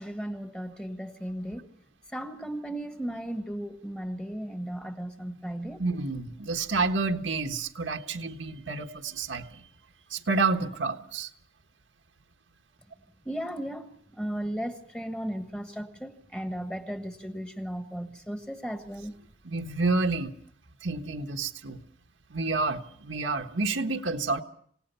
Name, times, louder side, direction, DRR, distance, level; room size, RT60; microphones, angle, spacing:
voice 1, 0.0-1.7 2.1-5.8 13.2-19.1, right 1 dB, 5° left, 1.4 m, -36 dB
voice 2, 5.8-9.6 10.1-11.3 19.4-20.3 20.8-21.8 22.3-24.4, right 3 dB, 85° right, 1.4 m, -29 dB
27.0 x 18.5 x 5.6 m
head